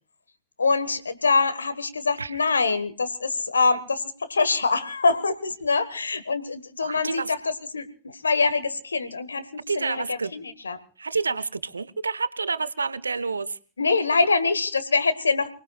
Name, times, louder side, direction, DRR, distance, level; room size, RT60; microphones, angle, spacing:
voice 1, 0.6-10.8 13.8-15.5, left 4 dB, 75° left, 12 dB, 1.5 m, -24 dB
voice 2, 6.8-7.3 9.7-10.3 11.0-13.6, right 4 dB, 75° right, 17 dB, 0.8 m, -28 dB
29.5 x 18.5 x 2.4 m, 0.38 s
figure-of-eight pair, 90°, 0 cm